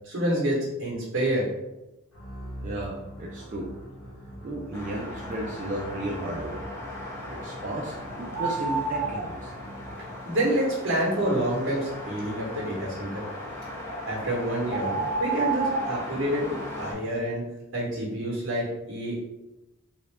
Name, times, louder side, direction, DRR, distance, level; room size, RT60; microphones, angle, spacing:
voice 1, 0.0-1.5 10.0-13.2 14.1-17.4 17.7-19.3, right 1 dB, 60° right, -4 dB, 1.0 m, -28 dB
sound 1, 2.1-10.4, equal, 70° left, 1.2 m, -43 dB
voice 2, 2.2-3.7 4.4-6.6 7.3-9.5, right 1 dB, 35° right, -1 dB, 0.3 m, -34 dB
sound 2, 4.7-16.9, left 1 dB, 10° left, 0.6 m, -39 dB
sound 3, 8.3-9.2 13.8-14.0 14.7-15.9, right 4 dB, 40° left, 1.2 m, -29 dB
3.2 x 2.6 x 3.2 m, 0.96 s
head